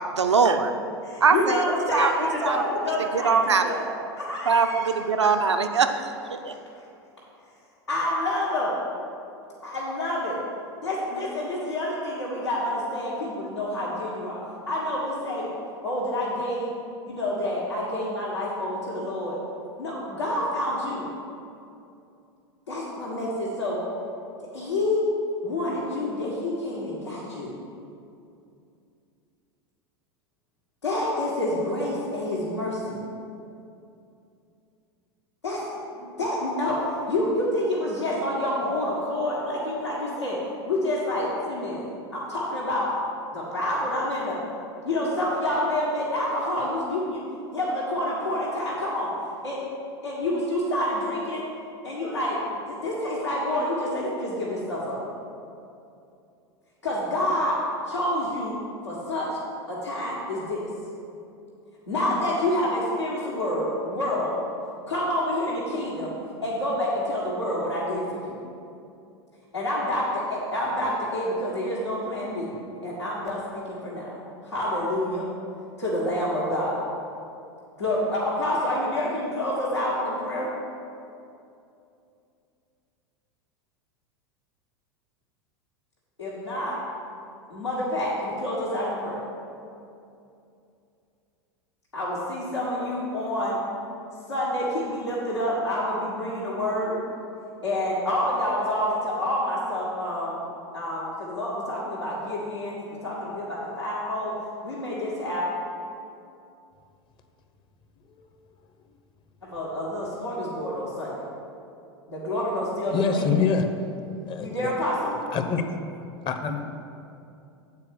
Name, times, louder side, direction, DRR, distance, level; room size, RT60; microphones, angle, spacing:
voice 1, 0.2-0.7 1.2-1.6 1.9-2.1 2.4-2.6 3.1-3.6 4.5-6.1 6.4-6.5, right 5 dB, 85° right, 7 dB, 0.5 m, -21 dB
voice 2, 1.0-3.9 4.1-4.9 5.2-5.3 6.5-6.6 7.9-8.7 9.6-10.4 10.8-14.4 14.7-15.5 15.8-16.7 17.1-19.4 19.8-21.1 22.7-23.8 24.5-25.1 25.4-27.5 30.8-33.1 35.4-40.4 40.6-41.8 42.1-42.9 43.3-44.4 44.8-47.2 47.5-49.1 49.4-49.6 50.0-51.4 51.8-52.4 52.7-55.0 56.8-57.6 57.9-58.6 58.8-59.3 59.7-60.7 61.9-64.4 64.9-66.1 66.4-68.4 69.5-72.5 72.8-74.1 74.4-75.3 75.8-76.8 77.8-80.5 86.2-86.8 87.5-89.2 91.9-93.6 94.3-97.0 97.6-100.4 100.7-104.4 104.6-105.5 109.4-111.2 112.1-113.3 114.4-115.2, left 1 dB, 90° left, -9 dB, 1.6 m, -28 dB
voice 3, 112.9-113.7 114.3-114.7 115.3-115.6 116.2-116.6, left 5 dB, 35° left, 6 dB, 0.8 m, -25 dB
8.4 x 4.7 x 6.4 m, 2.6 s
figure-of-eight pair, 85°, 14 cm